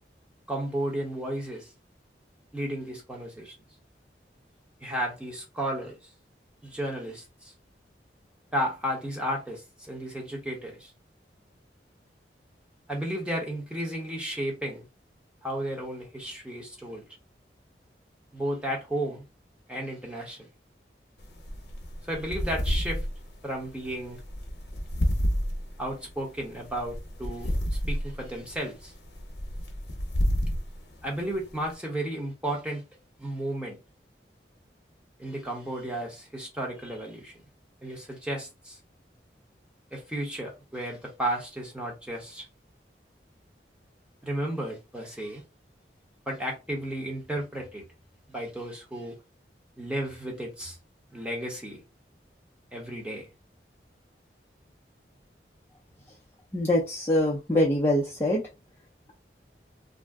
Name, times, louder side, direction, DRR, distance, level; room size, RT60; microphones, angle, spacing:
voice 1, 0.5-1.7 2.5-3.5 4.8-6.0 6.6-7.5 8.5-10.9 12.9-14.9 15.4-17.0 18.3-19.2 19.7-20.4 22.1-23.0 23.4-24.2 25.8-28.9 31.0-32.8 33.2-33.8 35.2-37.3 37.8-38.8 39.9-42.5 44.2-45.4 46.3-47.9 48.3-49.2 49.8-50.8 51.1-51.8 52.7-53.3, right 1 dB, 5° right, 0.8 m, -33 dB
sound 1, 21.2-31.7, equal, 70° left, 0.8 m, -31 dB
voice 2, 56.5-58.4, left 1 dB, 15° left, 0.4 m, -24 dB
2.5 x 2.0 x 3.5 m
head